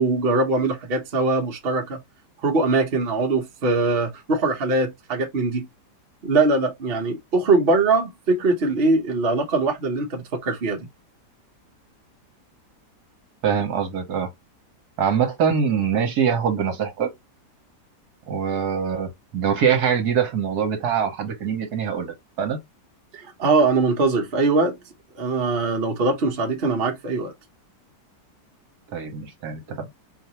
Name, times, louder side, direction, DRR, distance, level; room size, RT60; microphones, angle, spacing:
voice 1, 0.0-2.0 2.4-5.7 6.2-10.8 23.1-24.8 25.2-27.3, right 3 dB, 40° right, 1.0 m, -22 dB
voice 2, 13.4-14.3 15.0-17.1 18.3-22.6 28.9-29.9, right 7 dB, 65° right, 1.5 m, -23 dB
4.6 x 2.6 x 2.9 m
omnidirectional pair, 1.8 m